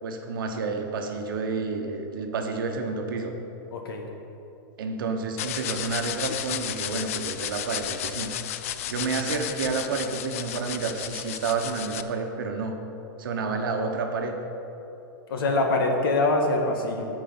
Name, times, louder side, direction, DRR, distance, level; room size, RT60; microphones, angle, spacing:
voice 1, 0.0-3.3 4.8-8.3 8.9-12.8 13.2-14.4, right 4 dB, 65° right, 4 dB, 1.2 m, -30 dB
voice 2, 3.7-4.0 15.3-17.1, left 2 dB, 75° left, 2 dB, 1.6 m, -24 dB
sound 1, 5.4-12.0, left 11 dB, 40° left, 0.3 m, -33 dB
9.8 x 4.9 x 7.8 m, 3.0 s
supercardioid pair, 180°, 12 cm